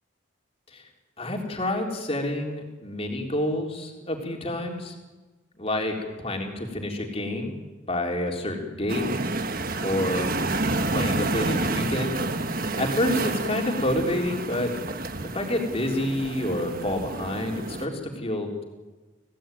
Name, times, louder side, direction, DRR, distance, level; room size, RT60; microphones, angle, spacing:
voice 1, 1.2-4.9 5.6-7.5 7.9-9.1 9.8-10.3 10.9-12.2 12.8-14.7 15.3-18.6, left 1 dB, 30° left, 2 dB, 3.8 m, -28 dB
sound 1, 8.9-17.9, right 2 dB, 45° right, 1.4 m, -29 dB
27.5 x 17.0 x 9.2 m, 1.2 s
head